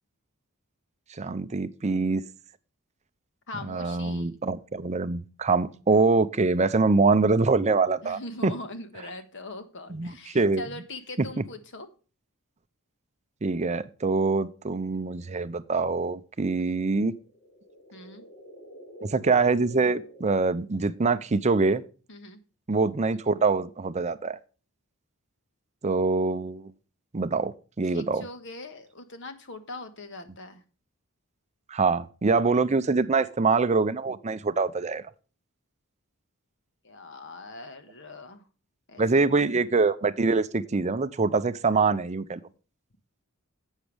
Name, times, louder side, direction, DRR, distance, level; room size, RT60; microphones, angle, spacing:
voice 1, 1.1-2.2 3.6-8.5 9.9-10.6 13.4-17.1 19.0-21.8 22.7-24.4 25.8-26.7 27.1-28.3 31.7-35.0 39.0-42.4, right 4 dB, 30° right, 12 dB, 0.5 m, -24 dB
voice 2, 3.5-4.4 8.0-11.9 16.6-16.8 17.9-18.2 22.1-22.4 27.8-30.6 36.8-38.4 38.9-39.0, left 2 dB, 55° left, 9 dB, 1.5 m, -41 dB
sound 1, 17.2-21.3, equal, 35° left, 3.4 m, -49 dB
11.5 x 8.2 x 3.4 m, 0.36 s
head